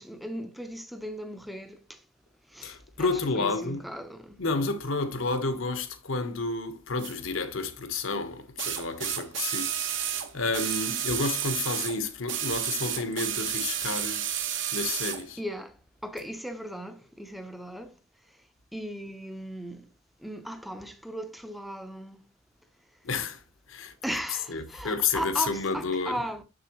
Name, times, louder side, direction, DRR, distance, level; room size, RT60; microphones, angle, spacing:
voice 1, 0.0-2.0 2.5-4.4 14.4-14.5 15.4-15.7 16.0-17.9 18.7-19.8 20.2-22.2 24.0-26.4, equal, ahead, 0.6 m, -37 dB
voice 2, 2.6-3.8 4.4-14.3 14.7-15.4 23.0-23.4 23.7-23.9 24.5-26.2, left 3 dB, 75° left, 1.1 m, -30 dB
sound 1, 7.0-7.1 8.6-12.0 12.3-15.2 16.2-16.3, right 10 dB, 65° right, 1.2 m, -31 dB
6.9 x 6.8 x 3.0 m
head